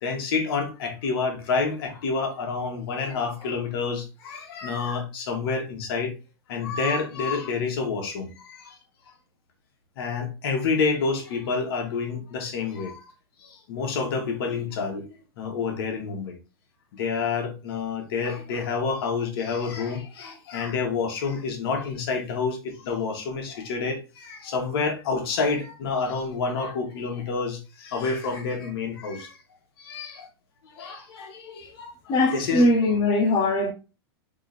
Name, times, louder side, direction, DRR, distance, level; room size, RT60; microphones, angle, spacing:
voice 1, 0.0-6.1 6.5-8.7 10.0-13.1 13.4-16.4 16.9-29.4 29.8-30.3 30.7-32.7, left 4 dB, 70° left, 1.6 m, -28 dB
voice 2, 32.1-33.7, left 2 dB, 30° left, 0.8 m, -21 dB
3.7 x 3.2 x 4.1 m
supercardioid pair, 135°, 13 cm